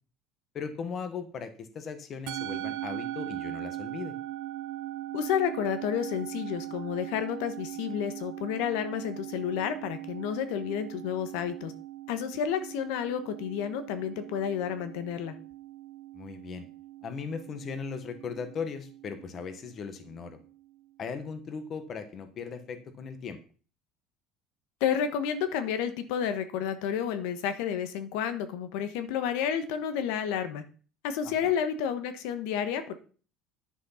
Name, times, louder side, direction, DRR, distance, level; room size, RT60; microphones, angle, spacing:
voice 1, 0.5-4.1 16.1-16.7 17.0-20.4 21.0-23.4 31.2-31.5, left 6 dB, 30° left, 9 dB, 1.3 m, -38 dB
Musical instrument, 2.3-20.8, right 14 dB, 70° right, 1.0 m, -40 dB
voice 2, 5.1-11.7 12.1-15.3 24.8-30.6 31.0-32.9, left 8 dB, 75° left, 10 dB, 1.4 m, -30 dB
10.5 x 6.3 x 5.8 m, 0.39 s
cardioid pair, 165°, 0 cm